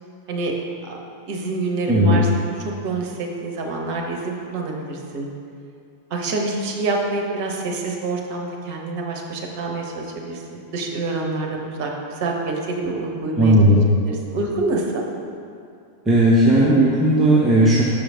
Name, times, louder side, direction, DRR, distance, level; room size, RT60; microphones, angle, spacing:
voice 1, 1.3-5.3 6.1-13.5 14.0-15.0, right 3 dB, 45° right, 1 dB, 0.9 m, -27 dB
voice 2, 1.9-2.2 13.4-13.8 16.1-17.8, right 1 dB, 15° right, -7 dB, 0.8 m, -15 dB
6.2 x 5.0 x 3.7 m, 2.5 s
figure-of-eight pair, 90°, 0 cm